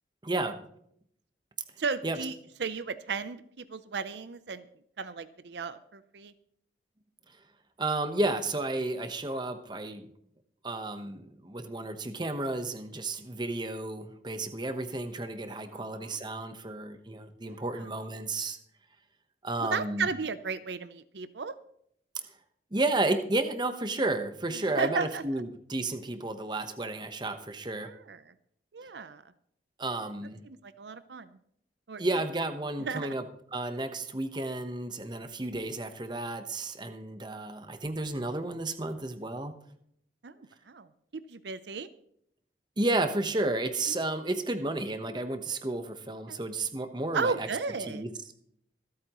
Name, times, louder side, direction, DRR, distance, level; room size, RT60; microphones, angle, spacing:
voice 1, 0.2-0.6 2.0-2.2 7.8-10.1 10.6-18.6 19.4-20.1 22.7-27.9 29.8-30.4 32.0-33.2 33.5-39.5 42.8-47.5 47.8-48.1, right 2 dB, 25° right, 8 dB, 1.0 m, -32 dB
voice 2, 1.8-2.3 2.6-4.7 5.0-6.3 15.7-16.2 17.4-17.8 19.6-21.5 24.8-25.2 27.8-28.2 28.7-29.2 30.5-31.3 31.9-32.0 32.8-33.1 40.2-40.3 40.7-40.9 41.1-41.9 43.9-44.0 46.3-46.4 47.1-48.0, right 4 dB, 75° right, 13 dB, 0.6 m, -34 dB
25.5 x 8.5 x 3.0 m, 0.69 s
head